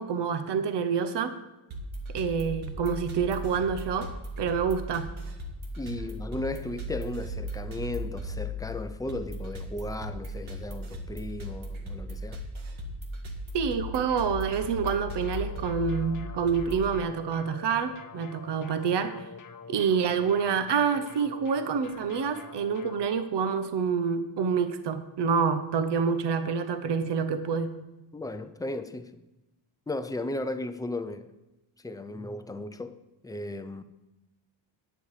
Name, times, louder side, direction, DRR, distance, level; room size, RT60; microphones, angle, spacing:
voice 1, 0.0-1.3 2.1-4.1 4.4-5.1 13.5-19.1 19.7-27.7, right 6 dB, 60° right, 0.9 m, -27 dB
sound 1, 1.7-16.9, equal, 75° right, 1.8 m, -37 dB
voice 2, 5.8-12.4 28.1-29.2 29.9-31.3 31.8-33.0 33.2-33.8, left 2 dB, 10° left, 0.4 m, -35 dB
sound 2, 14.1-23.1, left 5 dB, 40° left, 0.7 m, -46 dB
9.9 x 9.9 x 4.9 m
wide cardioid pair, 170°, 48 cm